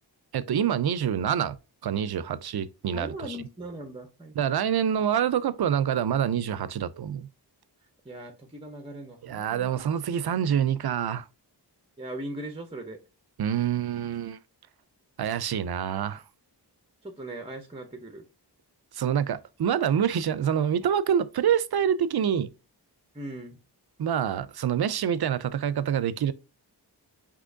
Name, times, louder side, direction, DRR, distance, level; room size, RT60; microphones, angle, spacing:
voice 1, 0.3-1.6 1.8-3.4 4.4-7.3 9.2-11.3 13.4-14.4 15.2-16.2 18.9-22.5 24.0-26.3, right 9 dB, 65° right, 0.5 m, -26 dB
voice 2, 2.9-4.3 8.0-9.7 12.0-13.0 17.0-18.2 23.1-23.6, right 1 dB, 15° right, 0.7 m, -39 dB
6.1 x 2.9 x 2.6 m
wide cardioid pair, 105°, 41 cm